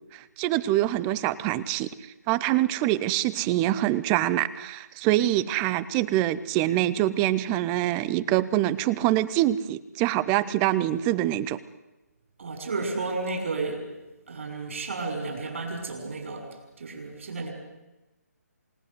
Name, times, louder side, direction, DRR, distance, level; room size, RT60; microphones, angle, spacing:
voice 1, 0.1-1.9 2.3-11.6, right 14 dB, 15° right, 18 dB, 0.8 m, -25 dB
voice 2, 12.4-13.9 14.3-17.5, right 3 dB, 50° right, 4 dB, 6.5 m, -32 dB
28.5 x 19.0 x 8.1 m, 1.1 s
figure-of-eight pair, 140°, 9 cm